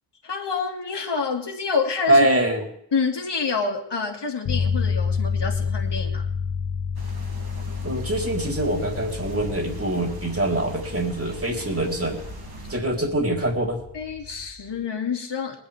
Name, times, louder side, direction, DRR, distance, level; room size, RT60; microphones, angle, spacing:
voice 1, 0.2-2.3 2.9-6.3 13.9-15.6, left 5 dB, 60° left, 2 dB, 2.8 m, -27 dB
voice 2, 2.1-2.6 7.8-12.2 12.7-13.8, right 1 dB, 30° right, 2 dB, 4.2 m, -23 dB
sound 1, 4.4-14.6, left 6 dB, 80° left, 1.7 m, -30 dB
sound 2, 6.9-12.7, right 3 dB, 50° right, 3.1 m, -40 dB
20.5 x 11.5 x 3.7 m, 0.72 s
cardioid pair, 40°, 46 cm